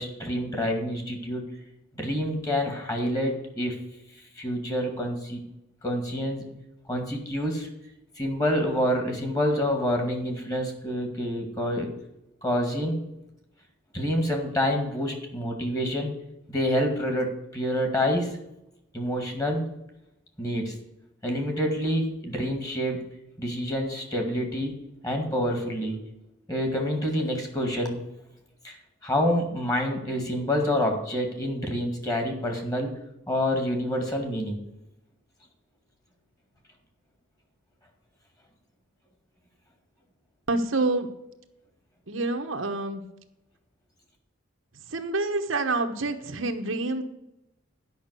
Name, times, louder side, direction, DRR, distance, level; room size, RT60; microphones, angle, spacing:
voice 1, 0.0-1.4 2.0-3.8 4.4-5.4 5.8-6.5 6.9-7.7 8.2-11.9 12.4-13.0 13.9-16.1 16.5-18.3 18.9-19.6 20.4-20.7 21.2-23.0 23.4-24.7 25.0-26.0 26.5-28.0 28.6-28.8 29.0-32.9 33.3-34.6, equal, 20° left, 3 dB, 2.1 m, -27 dB
voice 2, 40.5-41.1 42.1-43.0 44.9-47.0, right 2 dB, 75° right, 5 dB, 1.1 m, -27 dB
11.0 x 5.8 x 8.2 m, 0.87 s
head